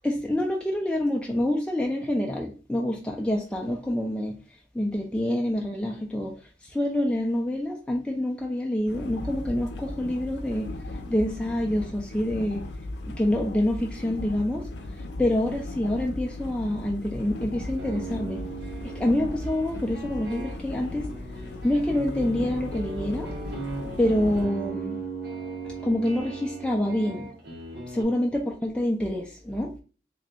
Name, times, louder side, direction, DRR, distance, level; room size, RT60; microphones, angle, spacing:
voice 1, 0.0-4.3 4.8-6.3 6.7-10.7 11.1-12.6 13.1-14.7 15.2-18.4 19.0-21.1 21.6-23.3 24.0-25.0 25.8-27.3 27.9-29.7, left 1 dB, 5° left, 0 dB, 0.3 m, -26 dB
sound 1, 8.9-24.5, left 2 dB, 75° left, 0.5 m, -37 dB
sound 2, 17.6-28.0, right 3 dB, 60° right, 1.1 m, -38 dB
3.1 x 2.2 x 3.8 m, 0.35 s
head